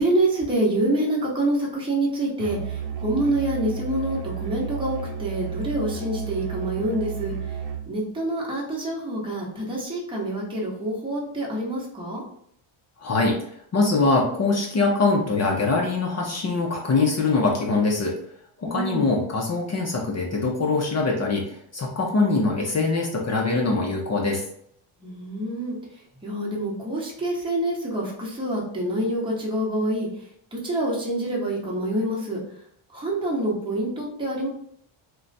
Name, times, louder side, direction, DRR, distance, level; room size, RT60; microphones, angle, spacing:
voice 1, 0.0-7.3 7.9-12.2 18.6-19.1 25.0-25.8 26.2-30.1 30.5-32.4 32.9-34.5, right 1 dB, 10° right, -4 dB, 1.0 m, -26 dB
Musical instrument, 2.4-7.9, right 7 dB, 80° right, 0.7 m, -32 dB
voice 2, 13.0-13.4 13.7-18.1 18.6-24.4, left 3 dB, 35° left, -1 dB, 0.7 m, -23 dB
2.3 x 2.2 x 3.9 m, 0.68 s
cardioid pair, 100°, 49 cm